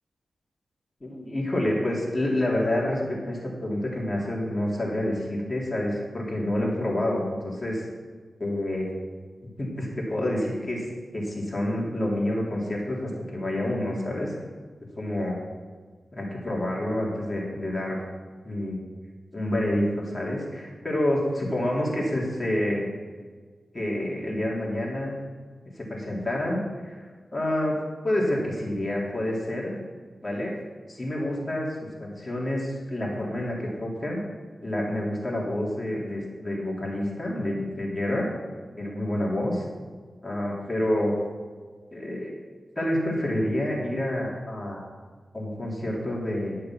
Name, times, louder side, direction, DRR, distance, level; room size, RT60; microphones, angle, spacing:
voice 1, 1.0-7.9 8.4-8.9 9.6-10.9 11.1-14.3 15.0-15.4 16.1-18.0 18.4-18.8 19.3-22.9 23.7-25.2 25.8-27.8 28.0-29.7 30.2-30.5 30.9-34.2 34.6-38.3 38.8-39.6 40.2-41.2 41.9-42.3 42.8-44.9 45.3-46.6, left 1 dB, 30° left, -4 dB, 3.6 m, -28 dB
12.0 x 6.7 x 6.1 m, 1.5 s
cardioid pair, 50°, 0 cm